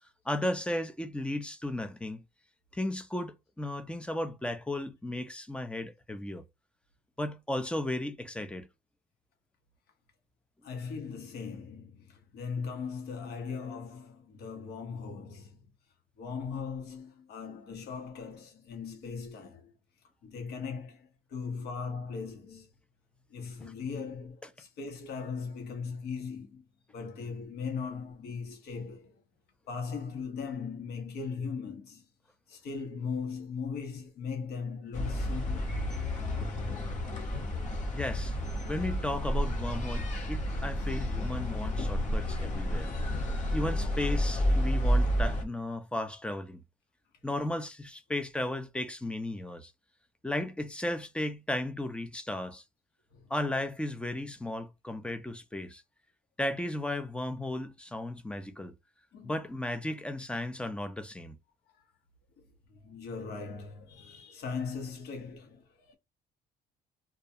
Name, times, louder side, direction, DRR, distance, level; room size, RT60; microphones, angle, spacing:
voice 1, 0.3-2.2 2.7-6.4 7.2-8.7 23.6-23.7 37.9-38.3 38.7-42.9 43.5-46.6 47.2-49.7 50.2-52.6 53.3-55.8 56.4-58.7 59.2-61.4, left 1 dB, 5° left, 0.4 m, -35 dB
voice 2, 10.6-15.6 16.2-19.7 20.2-22.7 23.3-26.7 26.9-29.1 29.7-32.0 32.5-35.7 53.1-53.3 59.1-59.3 62.4-62.5 62.7-65.9, left 5 dB, 70° left, 1.0 m, -39 dB
sound 1, 34.9-45.4, equal, 45° left, 1.0 m, -30 dB
2.3 x 2.2 x 2.7 m
cardioid pair, 110°, 17 cm